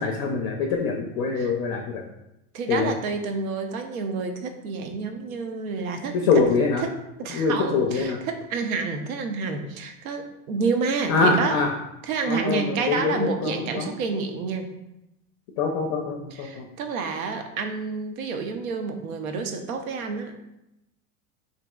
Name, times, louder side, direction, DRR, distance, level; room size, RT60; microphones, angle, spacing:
voice 1, 0.0-2.0 2.7-2.9 6.1-6.8 7.3-8.2 11.1-11.7 12.3-13.9 15.6-16.7, left 4 dB, 45° left, 2 dB, 0.4 m, -24 dB
voice 2, 2.5-6.4 6.8-6.9 7.2-11.6 12.0-14.7 16.3-20.3, right 4 dB, 90° right, 6 dB, 0.5 m, -29 dB
2.9 x 2.6 x 2.3 m, 0.88 s
hypercardioid pair, 100°, 41 cm